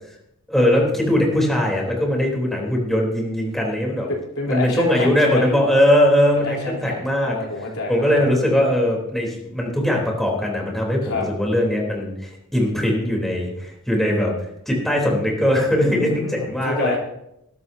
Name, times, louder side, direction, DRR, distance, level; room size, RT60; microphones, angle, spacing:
voice 1, 0.5-4.1 4.5-7.3 7.9-14.3 14.7-17.0, left 1 dB, ahead, -1 dB, 3.5 m, -20 dB
voice 2, 4.1-5.5 6.3-8.3 11.0-11.3 15.9-17.0, left 2 dB, 80° left, -1 dB, 3.6 m, -28 dB
21.0 x 12.5 x 2.8 m, 0.81 s
head